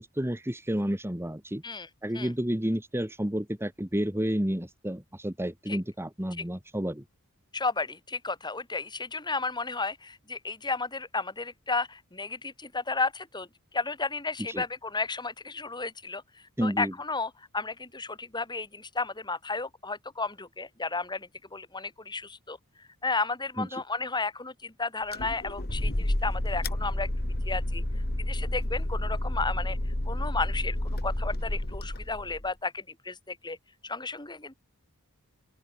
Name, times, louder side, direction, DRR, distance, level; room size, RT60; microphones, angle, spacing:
voice 1, 0.0-1.6 2.0-7.0 14.5-14.6 16.6-16.9 23.6-23.8, equal, 10° right, 1.8 m, -30 dB
voice 2, 7.5-27.1 27.4-27.8 28.3-33.6 33.8-34.5, left 3 dB, 20° left, 3.7 m, -33 dB
sound 1, 25.1-32.5, left 1 dB, 45° left, 2.1 m, -30 dB
open air
head